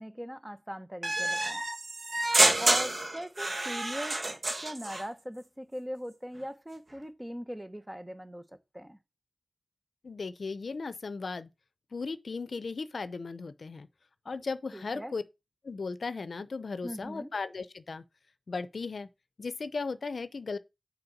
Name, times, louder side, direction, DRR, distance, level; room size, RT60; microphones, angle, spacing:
voice 1, 0.0-1.6 2.6-4.2 4.6-8.4 8.7-9.0 14.7-15.1 16.8-17.3, equal, 10° right, 0.8 m, -40 dB
sound 1, 1.0-5.0, right 2 dB, 40° right, 1.2 m, -28 dB
voice 2, 10.0-11.5 11.9-13.9 14.3-15.2 15.6-18.0 18.5-19.1 19.4-20.6, left 4 dB, 70° left, 0.6 m, -36 dB
6.9 x 4.4 x 5.2 m
wide cardioid pair, 100°, 0 cm